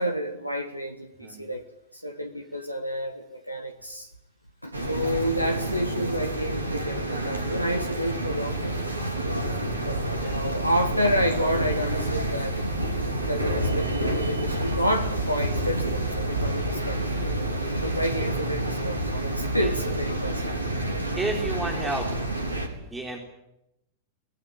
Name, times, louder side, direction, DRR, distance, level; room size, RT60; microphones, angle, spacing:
voice 1, 0.0-1.6 1.9-4.1 4.6-8.8 9.8-12.6 13.3-17.0 17.7-20.6, equal, 90° left, 6 dB, 1.5 m, -29 dB
sound 1, 4.7-22.7, right 1 dB, 80° right, 4.0 m, -28 dB
voice 2, 9.5-10.3 19.6-19.7 21.2-22.1 22.8-23.2, right 2 dB, 10° right, 2 dB, 3.9 m, -33 dB
25.5 x 19.0 x 9.0 m, 0.88 s
figure-of-eight pair, 90°, 0 cm